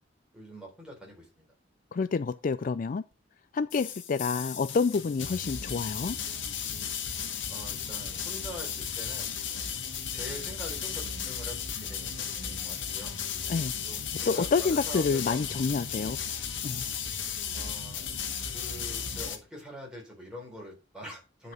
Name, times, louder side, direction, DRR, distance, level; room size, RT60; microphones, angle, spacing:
voice 1, 0.3-1.5 7.5-9.3 10.1-13.2 13.8-15.4 17.5-18.1 18.5-21.5, equal, 5° right, 4.2 m, -44 dB
voice 2, 1.9-3.0 3.5-6.2 13.5-13.7 14.3-16.2 16.6-16.8, left 4 dB, 45° left, 0.4 m, -28 dB
sound 1, 3.7-19.4, left 7 dB, 90° left, 1.7 m, -35 dB
9.9 x 5.3 x 5.3 m
head